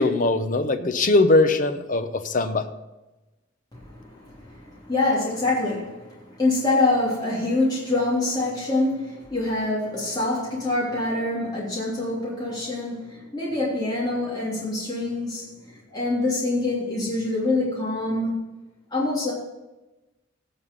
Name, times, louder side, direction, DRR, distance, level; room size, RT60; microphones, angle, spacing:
voice 1, 0.0-2.7, left 2 dB, 40° left, 9 dB, 0.8 m, -21 dB
voice 2, 3.7-18.4 18.9-19.3, left 2 dB, 20° left, -7 dB, 3.3 m, -25 dB
17.0 x 5.8 x 5.4 m, 1.0 s
head